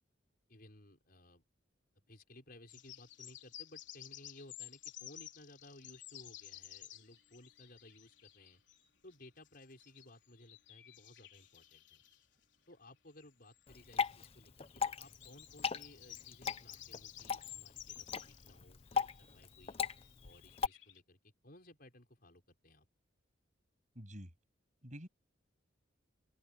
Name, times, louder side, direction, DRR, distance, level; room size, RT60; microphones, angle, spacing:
voice 1, 0.5-1.4 2.1-8.6 9.0-12.0 12.7-19.8 20.2-22.9, left 1 dB, 50° left, 5.6 m, -59 dB
sound 1, 2.7-10.1 10.4-12.2 13.2-18.6 18.9-21.0, left 12 dB, 65° left, 4.2 m, -54 dB
Water / Drip, 13.7-20.7, left 6 dB, 30° left, 0.6 m, -39 dB
voice 2, 23.9-24.3 24.8-25.1, equal, 40° right, 7.9 m, -48 dB
open air
head